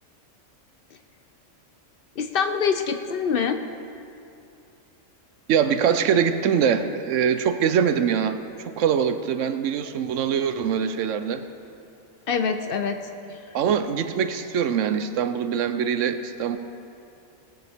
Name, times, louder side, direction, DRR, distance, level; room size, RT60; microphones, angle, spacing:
voice 1, 2.2-3.6 12.3-13.0 13.3-13.4, left 6 dB, 55° left, 7 dB, 0.7 m, -25 dB
voice 2, 5.5-11.4 13.5-16.6, right 7 dB, 80° right, 10 dB, 1.0 m, -23 dB
18.0 x 10.5 x 3.5 m, 2.6 s
omnidirectional pair, 1.3 m